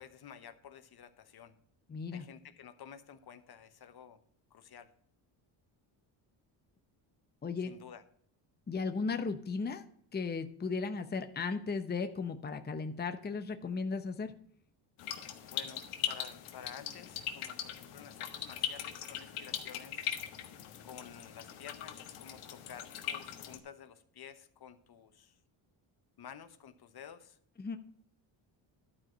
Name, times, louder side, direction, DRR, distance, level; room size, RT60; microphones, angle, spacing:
voice 1, 0.0-1.5 2.1-4.2 4.5-4.9 7.6-8.0 15.4-20.1 20.8-25.3 26.2-27.4, left 8 dB, 50° left, 10 dB, 1.1 m, -52 dB
voice 2, 1.9-2.2 7.4-7.7 8.7-9.9 10.1-14.3 27.6-27.8, left 4 dB, 20° left, 8 dB, 0.8 m, -36 dB
sound 1, 15.0-23.6, left 10 dB, 85° left, 1.4 m, -40 dB
12.0 x 4.9 x 5.9 m, 0.63 s
cardioid pair, 85°, 49 cm